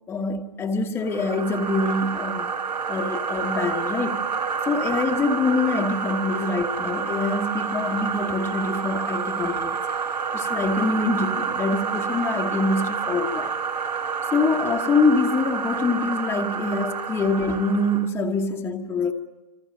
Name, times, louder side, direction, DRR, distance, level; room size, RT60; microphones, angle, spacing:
voice 1, 0.1-2.5 2.9-4.2 4.7-9.8 10.3-13.5 14.2-19.1, left 3 dB, 10° left, 1.1 m, -25 dB
sound 1, 1.1-18.1, right 6 dB, 85° right, 2.1 m, -28 dB
26.5 x 26.0 x 6.4 m
hypercardioid pair, 140°, 21 cm